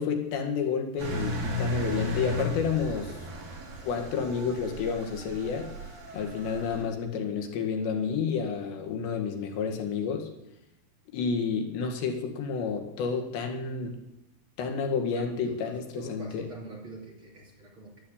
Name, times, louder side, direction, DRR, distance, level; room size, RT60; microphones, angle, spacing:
voice 1, 0.0-3.2 3.8-5.7 6.1-10.3 11.1-14.0 14.6-16.5, left 6 dB, 85° left, 3 dB, 4.2 m, -30 dB
Engine, 1.0-6.8, left 1 dB, 65° right, 5.5 m, -35 dB
voice 2, 15.0-18.0, right 1 dB, 30° right, -1 dB, 3.4 m, -44 dB
12.5 x 12.0 x 8.8 m, 0.86 s
omnidirectional pair, 4.9 m